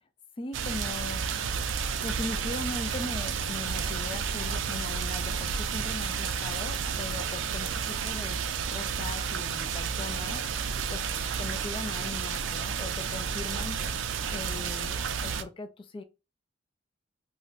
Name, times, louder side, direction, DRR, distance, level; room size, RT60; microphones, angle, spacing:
voice 1, 0.4-1.4 2.0-8.4 8.7-11.0 11.4-13.8 14.3-16.0, left 3 dB, 25° left, 0.3 m, -39 dB
sound 1, 0.5-15.4, right 6 dB, 80° right, 0.4 m, -31 dB
2.4 x 2.2 x 3.8 m
head